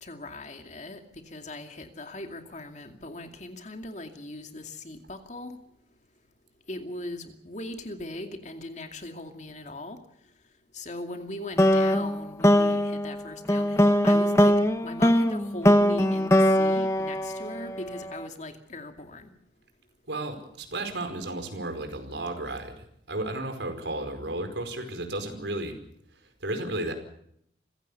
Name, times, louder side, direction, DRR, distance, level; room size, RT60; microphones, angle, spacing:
voice 1, 0.0-5.6 6.7-10.0 10.7-19.3, left 1 dB, 40° left, 5 dB, 2.4 m, -39 dB
sound 1, 11.6-18.0, equal, 15° left, 1.2 m, -21 dB
voice 2, 20.1-25.8 26.4-26.9, right 2 dB, 85° right, 6 dB, 4.8 m, -33 dB
25.5 x 16.5 x 6.9 m, 0.72 s
head